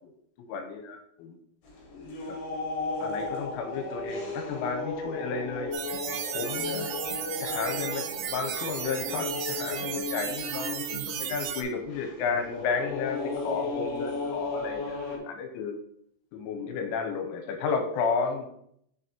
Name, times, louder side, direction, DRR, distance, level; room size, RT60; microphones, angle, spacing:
voice 1, 0.5-1.4 3.0-6.9 7.4-15.8 16.3-18.5, left 5 dB, 80° left, 5 dB, 3.0 m, -33 dB
sound 1, 1.6-15.2, left 3 dB, 65° left, 2.0 m, -35 dB
sound 2, 5.7-11.6, right 9 dB, 90° right, 3.3 m, -34 dB
6.7 x 6.5 x 2.9 m, 0.72 s
omnidirectional pair, 6.0 m